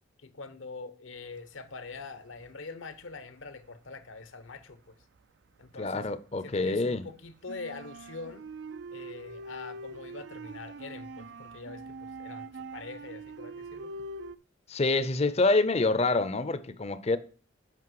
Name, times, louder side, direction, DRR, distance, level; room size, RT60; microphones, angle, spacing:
voice 1, 0.2-4.8 5.6-6.1 6.4-8.4 8.9-13.9, left 4 dB, 75° left, 0.9 m, -44 dB
sound 1, 1.7-2.6 2.9-5.8 6.2-14.4, right 2 dB, 60° right, 0.4 m, -44 dB
voice 2, 5.8-7.1 14.7-17.2, left 3 dB, 30° left, 0.6 m, -26 dB
8.4 x 5.5 x 4.7 m
head